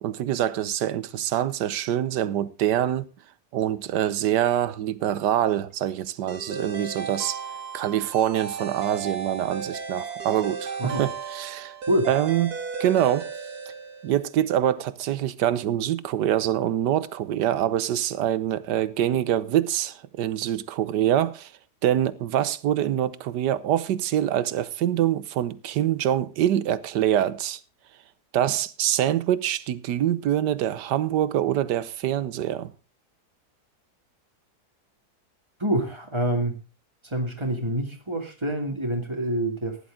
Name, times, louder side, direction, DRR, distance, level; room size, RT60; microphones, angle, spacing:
voice 1, 0.0-3.1 3.5-7.4 7.7-11.7 12.1-13.3 14.0-21.5 21.8-27.6 28.3-32.7, right 11 dB, 85° right, 1.4 m, -25 dB
sound 1, 6.3-14.4, right 6 dB, 65° right, 2.3 m, -35 dB
voice 2, 35.6-36.6 37.0-39.8, right 1 dB, 15° right, 2.3 m, -26 dB
15.5 x 10.5 x 3.6 m
omnidirectional pair, 1.8 m